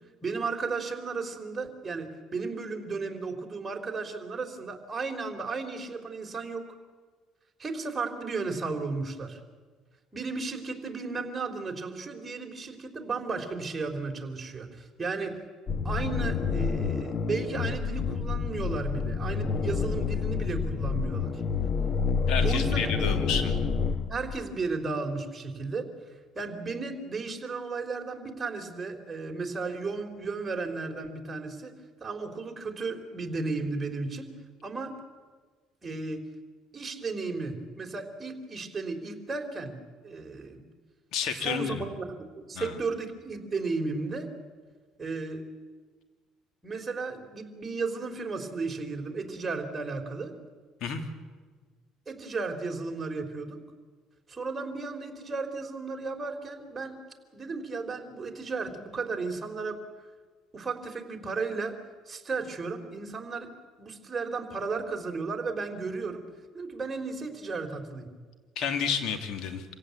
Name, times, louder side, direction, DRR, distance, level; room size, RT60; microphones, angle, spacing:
voice 1, 0.2-6.6 7.6-9.4 10.1-15.4 15.8-21.4 22.4-22.9 24.1-25.9 26.4-31.7 32.0-34.3 34.6-35.0 35.8-36.3 36.7-39.8 40.0-40.6 41.4-42.1 42.4-44.3 45.0-45.4 46.6-50.4 52.1-53.6 54.3-57.0 57.3-59.8 60.5-61.8 62.1-63.5 63.8-66.2 66.5-68.1, right 4 dB, 20° right, 2 dB, 3.7 m, -34 dB
sound 1, 15.7-24.5, left 5 dB, 45° left, 1.3 m, -28 dB
voice 2, 22.3-23.5 41.1-41.8 42.5-42.8 50.8-51.0 68.6-69.6, left 6 dB, 70° left, 6 dB, 2.7 m, -30 dB
26.0 x 16.5 x 8.3 m, 1.4 s
supercardioid pair, 95°, 0 cm